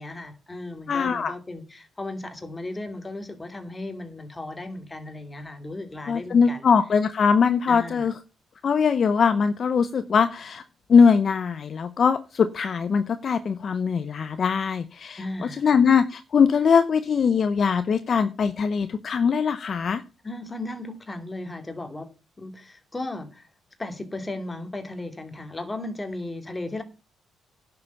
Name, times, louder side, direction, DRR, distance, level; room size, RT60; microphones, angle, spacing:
voice 1, 0.0-6.7 7.7-8.1 15.2-15.8 20.2-22.1 22.4-23.5 23.8-26.8, left 2 dB, 20° left, 2.5 m, -36 dB
voice 2, 0.9-1.3 6.1-8.1 8.6-10.6 10.9-15.2 15.6-20.0, left 6 dB, 50° left, 0.8 m, -21 dB
10.5 x 6.9 x 6.9 m
cardioid pair, 90°, 0 cm